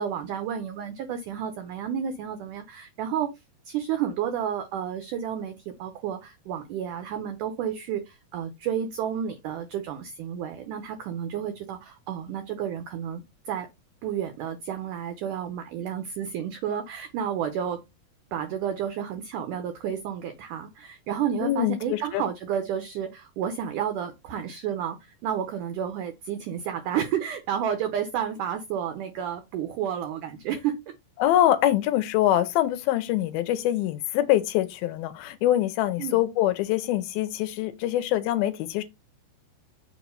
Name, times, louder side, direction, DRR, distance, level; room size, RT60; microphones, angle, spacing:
voice 1, 0.0-3.3 3.7-13.7 14.0-17.8 18.3-30.9 36.0-36.2, right 9 dB, 80° right, 1.8 m, -31 dB
voice 2, 21.4-22.2 31.2-38.8, left 13 dB, 80° left, 2.5 m, -24 dB
6.8 x 3.0 x 5.3 m
omnidirectional pair, 4.6 m